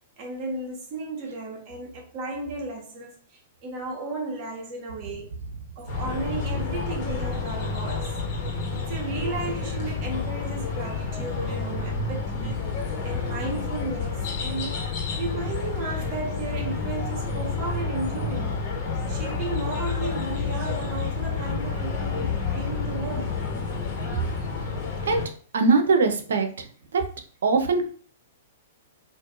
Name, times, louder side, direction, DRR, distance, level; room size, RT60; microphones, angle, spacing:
voice 1, 0.2-3.1 3.6-5.3 5.8-8.1 8.7-12.7 13.0-14.8 15.2-18.7 19.1-23.3, right 3 dB, 45° right, 1.3 m, -34 dB
sound 1, 5.9-25.3, left 4 dB, 45° left, 1.4 m, -29 dB
voice 2, 25.5-26.6 26.9-27.0 27.4-27.8, right 4 dB, 80° right, 0.7 m, -21 dB
4.3 x 2.8 x 2.5 m
hypercardioid pair, 125°, 0 cm